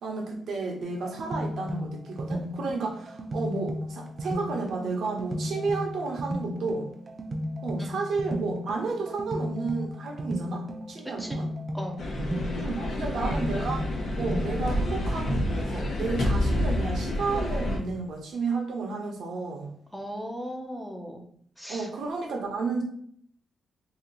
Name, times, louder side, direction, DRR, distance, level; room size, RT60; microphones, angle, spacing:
voice 1, 0.0-6.9 7.6-11.5 12.6-13.9 14.1-19.7 21.7-22.8, right 4 dB, 80° right, 1 dB, 0.9 m, -32 dB
sound 1, 0.8-15.7, equal, 35° right, 0.6 m, -35 dB
sound 2, 12.0-17.8, left 1 dB, 70° left, 0.8 m, -28 dB
voice 2, 19.9-21.2 21.6-21.9, equal, ahead, 2 dB, 0.6 m, -37 dB
2.9 x 2.6 x 3.8 m, 0.63 s
cardioid pair, 95°, 0 cm